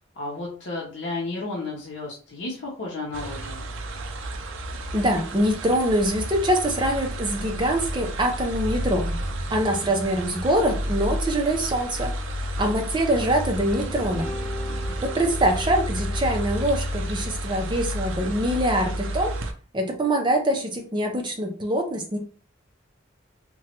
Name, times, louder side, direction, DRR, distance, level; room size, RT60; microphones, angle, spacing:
voice 1, 0.2-3.7 14.7-15.1, left 2 dB, 65° left, -3 dB, 0.7 m, -33 dB
sound 1, 3.1-19.5, equal, 75° right, 0.5 m, -31 dB
voice 2, 4.9-9.2 9.5-12.1 12.6-14.3 15.0-19.3 19.7-22.2, right 1 dB, 25° right, 3 dB, 0.5 m, -24 dB
sound 2, 13.7-17.8, left 1 dB, 10° left, 1.5 m, -39 dB
2.9 x 2.2 x 2.8 m, 0.39 s
head